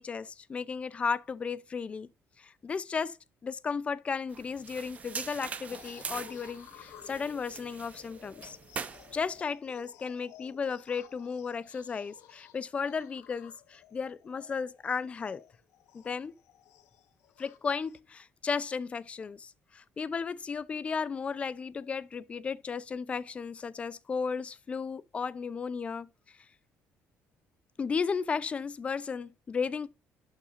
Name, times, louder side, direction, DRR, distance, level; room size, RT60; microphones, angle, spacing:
voice 1, 0.0-2.1 2.4-3.2 3.4-8.6 9.1-15.4 15.9-16.3 17.4-26.1 27.8-29.9, left 5 dB, 25° left, 0.5 m, -34 dB
sound 1, 4.3-9.4, right 6 dB, 30° right, 0.7 m, -43 dB
sound 2, 5.7-18.0, left 11 dB, 75° left, 0.9 m, -55 dB
11.5 x 5.7 x 2.5 m
cardioid pair, 160°, 5 cm